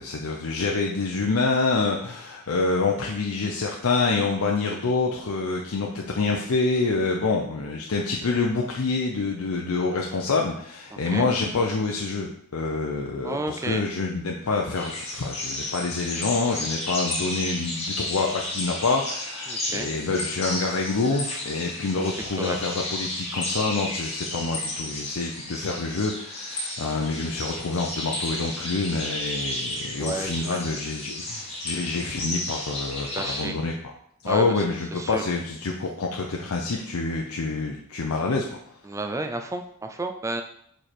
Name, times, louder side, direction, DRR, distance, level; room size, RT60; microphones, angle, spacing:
voice 1, 0.0-33.7 34.2-38.6, left 3 dB, 80° left, 0 dB, 0.6 m, -27 dB
voice 2, 10.9-11.3 13.2-13.8 19.5-19.9 22.4-22.6 30.0-30.8 33.0-33.6 34.3-34.6 34.9-35.2 38.8-40.4, right 2 dB, 15° right, 6 dB, 0.4 m, -32 dB
sound 1, 14.7-33.5, left 1 dB, 30° left, 1.5 m, -33 dB
5.0 x 4.5 x 4.3 m, 0.69 s
head